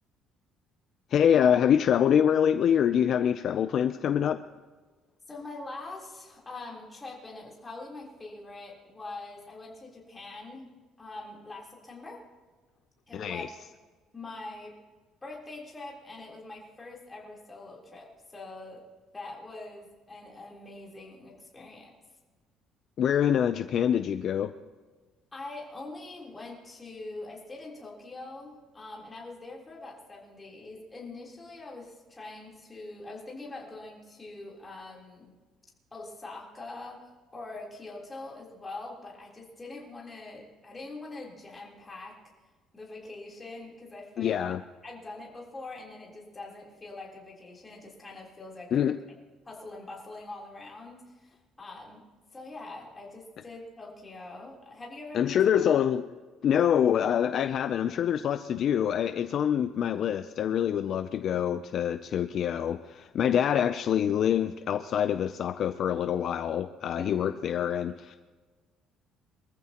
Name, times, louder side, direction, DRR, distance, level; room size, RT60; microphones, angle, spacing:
voice 1, 1.1-4.4 13.1-13.5 23.0-24.5 44.2-44.6 48.7-49.0 55.1-56.1 56.4-68.2, left 9 dB, 45° left, 10 dB, 0.5 m, -25 dB
voice 2, 5.3-10.7 11.0-12.2 13.1-13.5 14.1-14.8 15.2-18.8 19.1-22.0 25.3-35.3 35.9-42.2 42.7-44.4 44.8-49.0 49.4-52.1 52.3-55.4 67.0-67.5, left 2 dB, 15° left, -3 dB, 3.7 m, -43 dB
24.5 x 14.5 x 3.0 m, 1.4 s
cardioid pair, 155°, 0 cm